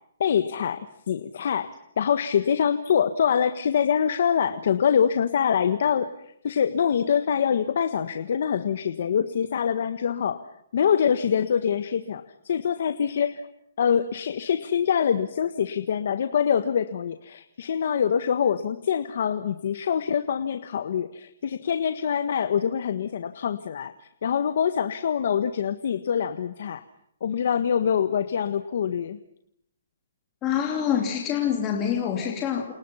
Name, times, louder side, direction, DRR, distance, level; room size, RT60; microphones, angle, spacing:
voice 1, 0.2-0.8 1.1-10.4 10.7-13.4 13.8-26.8 27.2-29.2, left 7 dB, 45° left, 10 dB, 1.5 m, -25 dB
voice 2, 30.4-32.7, left 9 dB, 15° left, 1 dB, 2.9 m, -26 dB
29.0 x 29.0 x 5.7 m, 0.73 s
hypercardioid pair, 180°, 0 cm